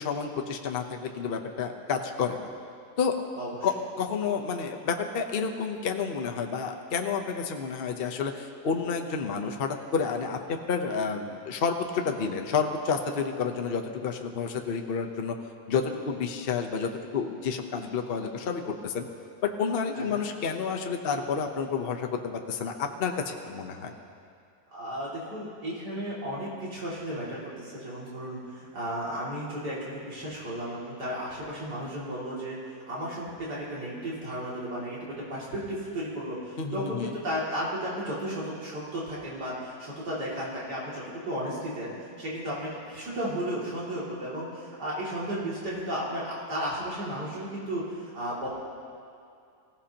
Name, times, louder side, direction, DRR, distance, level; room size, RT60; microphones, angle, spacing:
voice 1, 0.0-2.5 3.0-3.3 3.6-15.4 15.7-19.1 19.4-23.9 36.6-37.1, left 5 dB, 40° left, 3 dB, 0.9 m, -30 dB
voice 2, 3.4-3.7 19.9-20.2 24.7-48.5, equal, 75° right, -7 dB, 3.3 m, -34 dB
24.5 x 16.0 x 2.9 m, 2.4 s
omnidirectional pair, 1.8 m